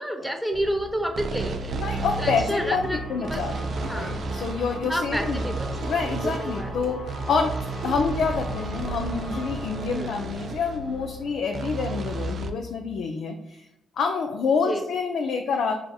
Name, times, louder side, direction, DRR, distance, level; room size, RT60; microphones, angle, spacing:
voice 1, 0.0-1.7 2.2-3.4 3.9-4.1 4.9-5.7 6.1-6.7 9.9-10.1 14.6-14.8, right 1 dB, ahead, 5 dB, 0.6 m, -30 dB
sound 1, 0.5-12.5, right 3 dB, 55° right, 0.3 m, -32 dB
voice 2, 1.7-2.8 3.1-5.4 5.9-7.5 7.8-13.6 14.0-15.7, left 5 dB, 70° left, 3 dB, 0.3 m, -27 dB
sound 2, 2.1-11.8, equal, 90° left, 1.3 m, -42 dB
sound 3, 2.8-3.0 3.8-4.1 4.8-5.1 5.8-6.0 6.8-7.0 7.8-8.1 8.8-9.0 9.8-10.0, right 2 dB, 85° right, 0.7 m, -41 dB
5.0 x 2.7 x 2.3 m, 0.84 s
hypercardioid pair, 50°, 0 cm